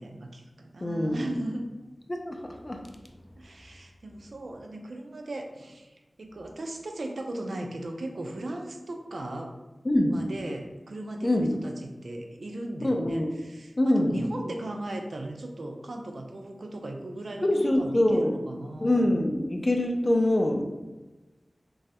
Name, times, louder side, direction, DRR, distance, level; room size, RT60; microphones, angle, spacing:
voice 1, 0.0-1.7 3.4-9.5 10.1-19.1, right 1 dB, 85° right, 3 dB, 0.3 m, -37 dB
voice 2, 0.8-1.3 2.1-2.8 9.8-10.2 11.2-11.6 12.8-13.3 13.8-14.2 17.4-18.3 18.8-20.6, left 1 dB, 35° left, 2 dB, 0.4 m, -24 dB
3.0 x 2.3 x 2.8 m, 1.1 s
wide cardioid pair, 75°, 0 cm